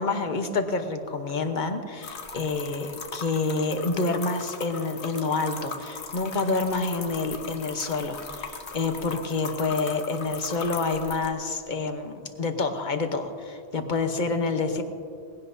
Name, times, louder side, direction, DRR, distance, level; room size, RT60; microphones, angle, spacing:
voice 1, 0.0-14.8, left 3 dB, 45° left, 6 dB, 1.1 m, -28 dB
sound 1, 2.0-11.3, left 4 dB, 85° left, 1.3 m, -39 dB
20.5 x 16.5 x 2.7 m, 2.4 s
omnidirectional pair, 1.1 m